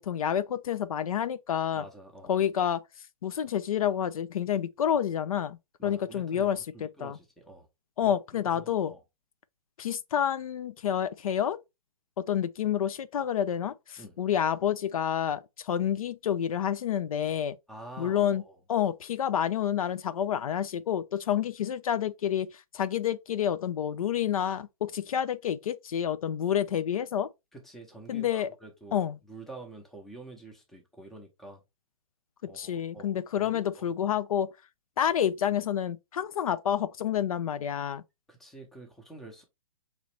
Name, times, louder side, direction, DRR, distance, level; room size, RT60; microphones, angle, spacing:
voice 1, 0.0-1.8 2.3-2.8 3.2-7.2 8.0-8.9 9.8-11.6 12.2-17.6 18.0-18.4 18.7-27.3 28.1-28.5 28.9-29.2 32.5-34.5 35.0-38.0, left 9 dB, 75° left, 0.5 m, -29 dB
voice 2, 1.7-2.4 5.8-7.7 8.0-8.2 8.5-9.0 14.0-14.2 17.7-18.6 21.3-21.4 27.5-31.6 32.4-33.8 38.3-39.4, right 2 dB, ahead, 0.7 m, -47 dB
3.9 x 3.1 x 3.2 m
hypercardioid pair, 155°, 18 cm